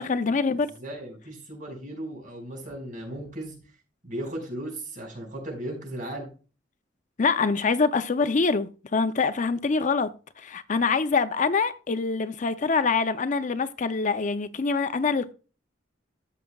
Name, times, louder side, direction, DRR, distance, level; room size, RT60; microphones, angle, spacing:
voice 1, 0.0-0.7 7.2-10.1 10.4-15.3, left 4 dB, 40° left, 0.5 m, -25 dB
voice 2, 0.5-3.5 4.0-6.3, right 1 dB, 45° right, 5.1 m, -36 dB
13.5 x 7.0 x 2.3 m
head